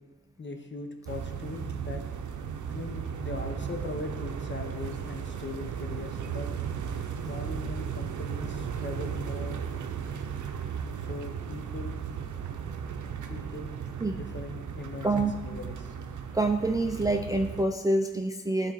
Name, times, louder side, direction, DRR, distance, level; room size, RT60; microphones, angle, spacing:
voice 1, 0.4-2.0 2.7-6.5 7.2-9.8 10.9-12.2 13.3-13.7 14.2-15.9, left 3 dB, 40° left, 5 dB, 0.9 m, -40 dB
sound 1, 1.1-17.6, right 7 dB, 85° right, 0.6 m, -36 dB
voice 2, 16.3-18.7, right 2 dB, 10° right, 3 dB, 0.4 m, -26 dB
11.5 x 3.9 x 4.1 m, 1.2 s
cardioid pair, 65°, 29 cm